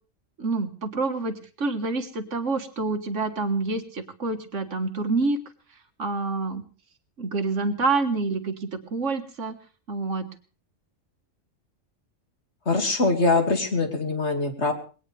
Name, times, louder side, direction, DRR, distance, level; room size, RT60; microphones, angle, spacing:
voice 1, 0.4-5.4 6.0-6.6 7.2-9.6 9.9-10.3, right 3 dB, 65° right, 7 dB, 1.8 m, -27 dB
voice 2, 12.7-14.7, left 3 dB, 60° left, 4 dB, 2.6 m, -23 dB
21.0 x 18.0 x 3.4 m, 0.36 s
omnidirectional pair, 1.3 m